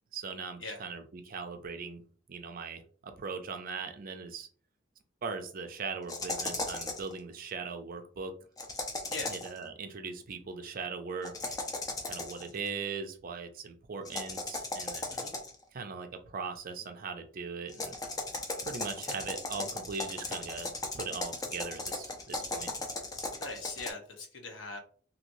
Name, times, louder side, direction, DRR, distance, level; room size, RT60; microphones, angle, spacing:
voice 1, 0.1-2.0 2.3-4.5 5.2-8.4 9.3-11.6 12.1-15.0 15.7-18.0 18.6-22.7, right 5 dB, 45° right, 7 dB, 0.5 m, -40 dB
sound 1, 6.1-7.1 8.6-9.6 11.2-12.5 14.1-15.6 17.7-23.9, left 2 dB, 20° left, 0.5 m, -37 dB
voice 2, 23.4-24.8, left 3 dB, 65° left, 3 dB, 0.9 m, -41 dB
3.0 x 2.8 x 2.6 m, 0.43 s
head